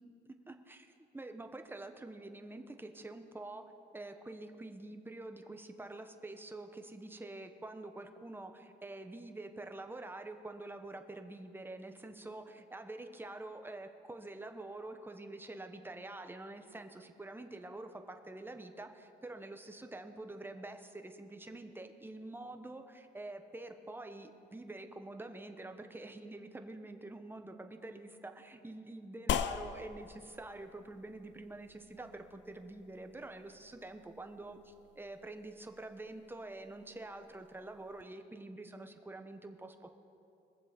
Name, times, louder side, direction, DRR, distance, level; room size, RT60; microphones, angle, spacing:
voice 1, 0.0-3.7 3.9-39.9, right 2 dB, 10° right, 6 dB, 1.0 m, -47 dB
sound 1, 29.3-38.0, left 9 dB, 65° left, 0.6 m, -43 dB
21.5 x 7.4 x 5.2 m, 2.6 s
cardioid pair, 90°, 20 cm